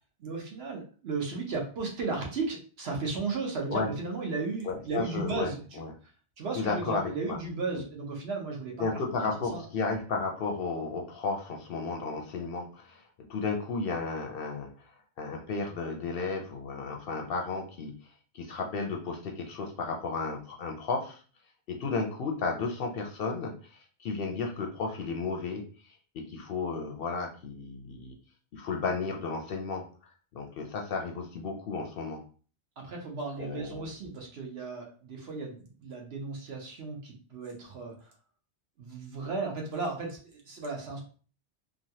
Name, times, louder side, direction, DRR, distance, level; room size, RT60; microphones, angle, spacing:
voice 1, 0.2-5.8 6.4-8.9 9.1-9.2 9.5-9.6 32.8-38.1 38.8-41.0, right 4 dB, 65° right, 1 dB, 1.0 m, -35 dB
voice 2, 4.6-5.9 6.6-7.4 8.8-13.0 13.3-14.7 15.2-17.9 18.3-21.2 21.7-25.6 26.1-28.1 28.5-29.8 30.3-32.2 33.4-33.9, left 4 dB, 65° left, 2 dB, 0.7 m, -33 dB
3.0 x 2.3 x 2.8 m, 0.39 s
omnidirectional pair, 1.2 m